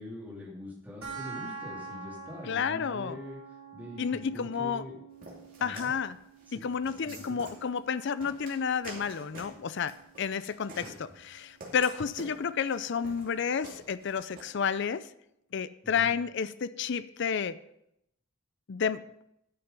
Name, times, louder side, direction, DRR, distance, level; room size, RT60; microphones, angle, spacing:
voice 1, 0.0-3.4 3.7-5.0 5.6-5.9 6.5-6.6 7.0-7.4 10.8-11.1 15.8-16.1, left 1 dB, 10° right, -5 dB, 2.7 m, -43 dB
sound 1, 1.0-12.0, right 5 dB, 80° right, 3.0 m, -48 dB
voice 2, 2.5-3.2 4.0-4.8 5.6-6.2 6.5-15.1 15.5-17.6 18.7-19.0, left 6 dB, 55° left, 15 dB, 0.4 m, -31 dB
sound 2, 5.2-14.4, right 2 dB, 40° right, 2.8 m, -48 dB
11.5 x 6.5 x 5.2 m, 0.80 s
head